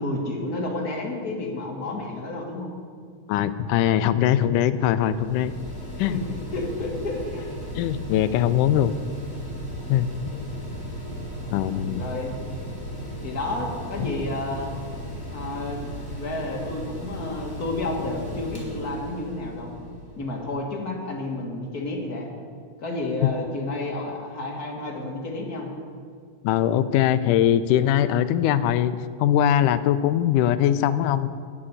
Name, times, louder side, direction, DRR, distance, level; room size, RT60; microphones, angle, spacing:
voice 1, 0.0-2.7 6.1-6.2 6.5-7.5 11.9-12.3 13.2-14.8 15.3-15.8 16.1-19.7 20.2-22.3 22.8-25.7, left 2 dB, 35° left, 0 dB, 1.7 m, -31 dB
voice 2, 3.3-5.5 6.0-6.2 7.8-8.9 9.9-10.1 11.5-12.0 26.4-31.3, left 11 dB, 80° left, 13 dB, 2.0 m, -21 dB
Mechanical fan, 4.2-20.4, equal, 5° left, 3.2 m, -36 dB
sound 1, 5.8-14.2, right 2 dB, 40° right, 3.4 m, -45 dB
11.5 x 8.6 x 9.7 m, 2.2 s
omnidirectional pair, 3.9 m